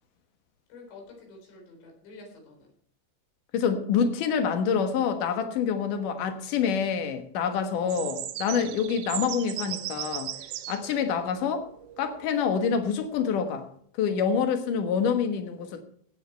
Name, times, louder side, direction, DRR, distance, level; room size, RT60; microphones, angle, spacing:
voice 1, 0.7-2.7, left 3 dB, 85° left, 1 dB, 6.7 m, -48 dB
voice 2, 3.5-10.3 10.7-11.7 12.0-13.7 14.0-15.8, left 6 dB, 65° left, 7 dB, 2.1 m, -26 dB
sound 1, 7.9-13.3, right 13 dB, 75° right, 2.7 m, -37 dB
16.5 x 9.1 x 4.5 m, 0.63 s
omnidirectional pair, 5.6 m